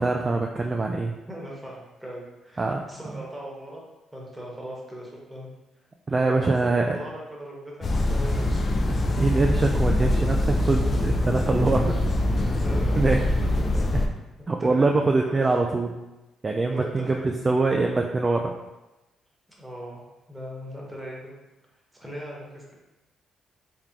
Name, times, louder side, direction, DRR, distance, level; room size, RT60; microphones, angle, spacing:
voice 1, 0.0-1.1 2.6-2.9 3.1-3.2 6.1-7.0 9.2-12.1 12.4-12.6 12.9-13.2 14.5-15.9 16.4-18.5, right 3 dB, 30° right, 2 dB, 0.3 m, -24 dB
voice 2, 1.3-3.8 4.1-5.5 6.1-7.7 8.0-8.4 12.6-13.3 14.6-15.4 16.6-17.5 19.6-21.3 21.9-22.7, equal, 10° right, -4 dB, 1.2 m, -39 dB
sound 1, 7.8-14.1, left 1 dB, 35° left, 0.4 m, -23 dB
3.6 x 3.3 x 2.9 m, 1.0 s
cardioid pair, 90°, 0 cm